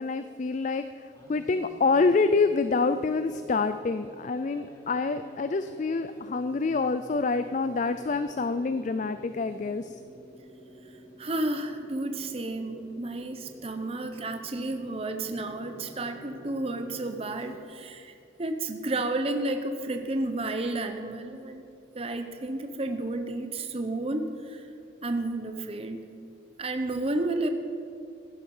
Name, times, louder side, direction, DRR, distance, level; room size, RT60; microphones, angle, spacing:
voice 1, 0.0-10.0, left 4 dB, 40° left, 11 dB, 0.4 m, -27 dB
sound 1, 1.1-17.6, equal, 15° left, 2.3 m, -49 dB
voice 2, 11.2-18.1 18.4-21.6 21.9-24.6 25.0-26.1 26.6-27.5, right 2 dB, 30° right, 6 dB, 0.8 m, -31 dB
15.5 x 11.0 x 5.5 m, 2.6 s
head